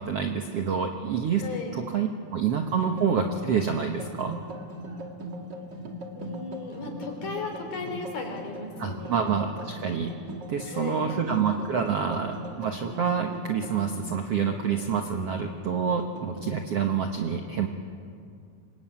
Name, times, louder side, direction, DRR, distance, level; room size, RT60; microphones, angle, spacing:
voice 1, 0.0-1.4 1.7-4.4 8.8-10.1 10.5-17.7, right 6 dB, 65° right, 4 dB, 1.5 m, -27 dB
voice 2, 1.4-1.8 6.1-9.2 10.6-11.2 11.7-12.1, left 4 dB, 70° left, 3 dB, 5.4 m, -36 dB
sound 1, 2.5-16.6, equal, 35° right, 2.0 m, -40 dB
26.0 x 21.5 x 8.9 m, 2.3 s
omnidirectional pair, 4.4 m